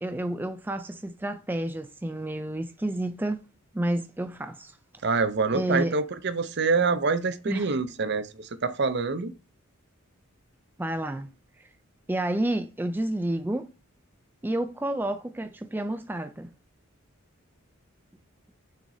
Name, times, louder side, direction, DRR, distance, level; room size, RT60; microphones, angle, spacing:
voice 1, 0.0-3.4 3.7-4.8 5.5-5.9 7.5-7.8 10.8-11.3 11.6-11.7 12.1-13.7 14.4-16.5, right 1 dB, 10° right, 0.3 m, -30 dB
voice 2, 5.0-9.3, right 4 dB, 55° right, 0.6 m, -26 dB
6.5 x 6.2 x 2.7 m
head